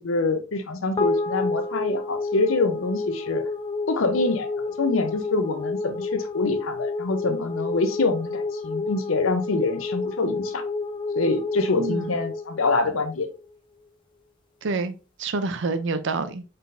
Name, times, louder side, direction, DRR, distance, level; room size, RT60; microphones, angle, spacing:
voice 1, 0.0-3.4 3.9-4.5 4.8-10.6 11.2-13.3, left 3 dB, 85° left, 0.7 m, -25 dB
sound 1, 1.0-13.5, left 3 dB, 25° left, 0.3 m, -30 dB
voice 2, 11.8-12.2 14.6-16.4, right 3 dB, 65° right, 0.5 m, -28 dB
4.0 x 3.8 x 2.6 m
head